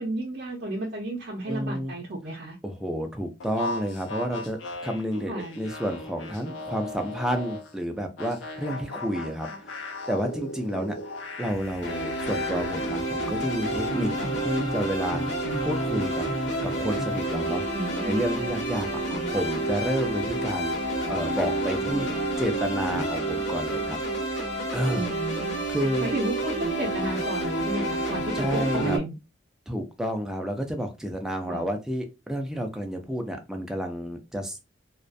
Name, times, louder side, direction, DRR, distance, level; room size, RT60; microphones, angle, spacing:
voice 1, 0.0-2.6 5.3-5.6 9.2-9.3 10.7-10.9 14.2-14.4 17.7-18.2 19.1-19.2 21.8-22.4 24.9-25.6 26.0-29.2 31.5-31.7, right 2 dB, 50° right, 0.5 m, -33 dB
voice 2, 1.5-1.9 2.6-9.8 10.1-11.0 11.4-14.1 14.4-15.3 15.6-16.2 16.6-17.6 18.0-18.9 19.3-20.7 21.1-22.1 22.4-24.0 24.7-25.0 25.7-26.1 28.3-29.0 29.7-34.6, equal, 5° right, 0.3 m, -30 dB
sound 1, 3.4-7.7 8.2-13.0, left 2 dB, 85° left, 0.5 m, -38 dB
sound 2, 11.8-29.0, right 1 dB, 60° left, 0.8 m, -29 dB
2.4 x 2.1 x 2.5 m
head